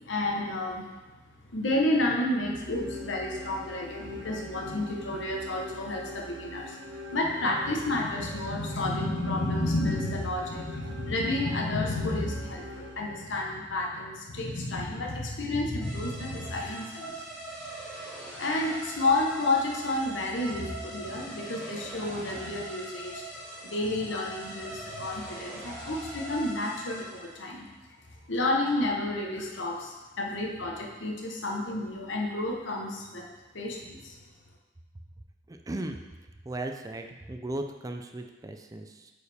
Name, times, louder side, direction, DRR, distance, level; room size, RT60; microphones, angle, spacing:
voice 1, 0.1-0.8 1.5-6.8 7.1-17.1 18.2-23.2 23.6-27.7 28.3-33.3 33.5-34.1, left 2 dB, 75° left, 0 dB, 1.0 m, -30 dB
sound 1, 2.3-13.6, left 1 dB, 70° right, 0.6 m, -43 dB
sound 2, 15.8-27.5, right 1 dB, 5° left, 2.0 m, -42 dB
voice 2, 35.5-36.0 36.4-39.1, right 1 dB, 20° right, 5 dB, 0.4 m, -36 dB
8.6 x 4.7 x 3.4 m, 1.2 s
head